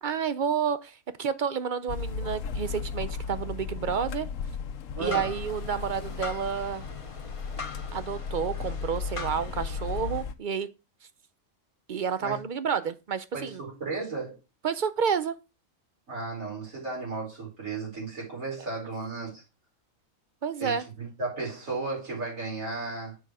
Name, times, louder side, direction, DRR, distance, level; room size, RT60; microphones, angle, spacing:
voice 1, 0.0-4.3 5.0-6.9 7.9-10.7 11.9-13.6 14.6-15.3 20.4-20.9, right 7 dB, 55° right, 0.6 m, -30 dB
sound 1, 1.9-10.3, left 5 dB, 75° left, 1.1 m, -35 dB
voice 2, 4.9-5.3 12.2-12.4 13.3-14.4 16.1-19.4 20.6-23.2, right 3 dB, 90° right, 5.2 m, -34 dB
sound 2, 5.0-10.2, left 3 dB, 30° left, 0.9 m, -42 dB
7.3 x 5.5 x 4.7 m
omnidirectional pair, 1.4 m